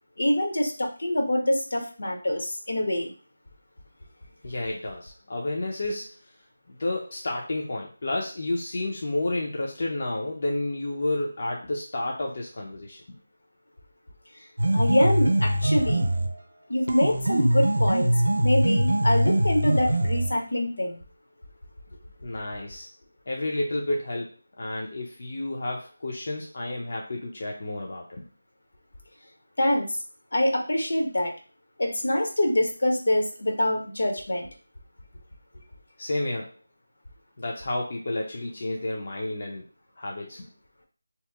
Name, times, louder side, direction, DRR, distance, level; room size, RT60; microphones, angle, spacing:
voice 1, 0.2-3.1 14.4-14.5 14.7-16.1 16.7-18.1 18.4-21.0 29.6-30.0 30.3-31.3 31.8-34.5, left 1 dB, 70° left, 2 dB, 0.8 m, -25 dB
voice 2, 4.4-6.3 6.7-13.0 22.2-22.9 23.3-24.3 24.6-28.2 36.0-36.5 37.4-39.7 40.0-40.5, left 2 dB, 45° left, -1 dB, 0.5 m, -31 dB
sound 1, 14.6-16.4 16.9-20.4, right 1 dB, 80° right, 0.5 m, -23 dB
2.8 x 2.0 x 3.4 m, 0.38 s
figure-of-eight pair, 170°, 0 cm